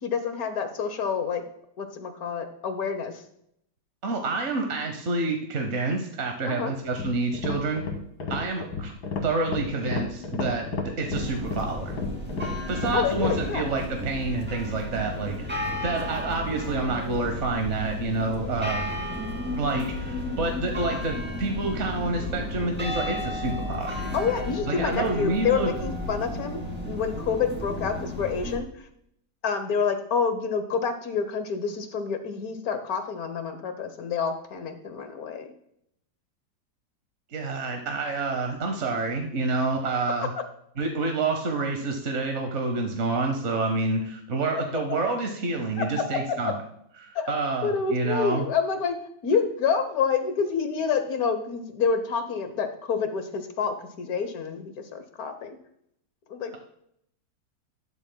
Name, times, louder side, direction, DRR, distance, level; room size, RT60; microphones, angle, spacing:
voice 1, 0.0-1.4 1.8-3.2 6.5-6.7 12.9-13.6 24.1-28.7 29.4-35.5 40.2-40.4 45.8-46.5 47.1-47.3 47.6-48.9 49.2-55.6 56.3-56.6, left 6 dB, 55° left, 8 dB, 1.3 m, -28 dB
voice 2, 4.0-7.8 8.3-8.9 9.2-12.0 12.7-18.8 19.6-24.2 24.7-25.7 37.3-40.3 40.8-46.5 47.0-48.4, right 3 dB, 45° right, 4 dB, 1.1 m, -28 dB
sound 1, 6.9-13.5, left 3 dB, 80° left, 2.0 m, -32 dB
sound 2, 11.1-28.6, left 1 dB, 5° right, 1.9 m, -33 dB
12.5 x 10.5 x 2.2 m, 0.73 s
omnidirectional pair, 2.0 m